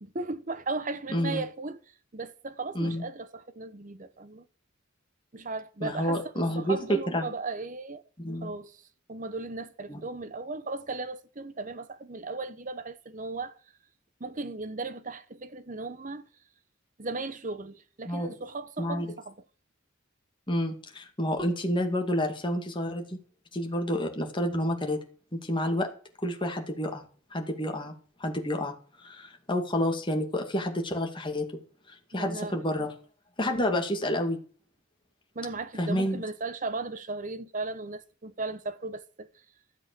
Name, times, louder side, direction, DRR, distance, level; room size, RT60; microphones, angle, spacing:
voice 1, 0.0-1.8 2.1-4.4 5.3-8.0 8.4-8.8 9.1-13.6 14.2-16.2 17.0-19.4 32.1-32.9 35.3-39.3, right 3 dB, 40° right, 1.0 m, -36 dB
voice 2, 1.1-1.4 2.7-3.0 5.8-7.3 8.2-8.5 9.9-10.0 18.1-18.3 18.8-19.1 20.5-23.0 23.5-25.0 25.3-25.9 26.2-27.1 27.3-27.9 28.2-28.7 29.0-31.5 32.1-32.9 33.4-34.4 35.8-36.2, equal, 25° left, 2.3 m, -29 dB
13.0 x 8.0 x 6.7 m
head